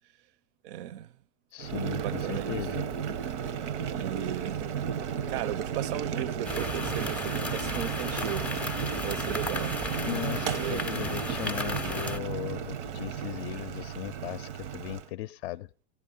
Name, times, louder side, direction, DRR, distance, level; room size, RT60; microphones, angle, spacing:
voice 1, 0.6-1.1 1.7-2.6 3.9-4.8 5.3-8.5 9.0-9.8 10.5-10.9, right 12 dB, 50° right, 0.5 m, -36 dB
voice 2, 1.5-2.9 10.0-15.7, left 15 dB, 60° left, 0.5 m, -37 dB
Boiling, 1.6-15.1, right 8 dB, 85° right, 0.9 m, -34 dB
sound 1, 6.4-12.2, left 2 dB, 5° left, 0.5 m, -35 dB
16.0 x 9.3 x 5.4 m
supercardioid pair, 130°, 34 cm